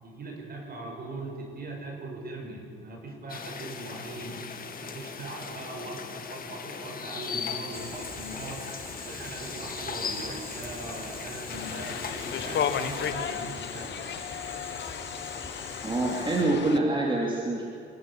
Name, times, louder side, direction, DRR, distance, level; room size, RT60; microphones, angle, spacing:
voice 1, 0.0-4.4 4.8-8.7 9.1-14.1, right 2 dB, 50° right, 1 dB, 6.1 m, -40 dB
sound 1, 3.3-13.1, left 6 dB, 45° left, 2.2 m, -38 dB
Boiling, 7.7-16.4, left 2 dB, 15° left, 5.9 m, -42 dB
sound 2, 11.5-16.8, left 8 dB, 60° left, 1.2 m, -34 dB
voice 2, 15.8-17.7, right 2 dB, 25° right, -2 dB, 3.6 m, -26 dB
28.0 x 12.0 x 8.6 m, 2.3 s
cardioid pair, 90°, 20 cm